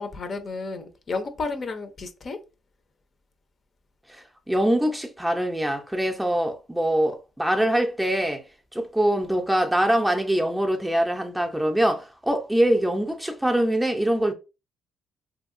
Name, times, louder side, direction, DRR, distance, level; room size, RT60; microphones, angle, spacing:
voice 1, 0.0-2.4, left 3 dB, 45° left, 0.6 m, -32 dB
voice 2, 4.1-8.4 8.7-14.3, right 1 dB, 5° right, 0.6 m, -23 dB
2.8 x 2.7 x 2.5 m
cardioid pair, 90°, 0 cm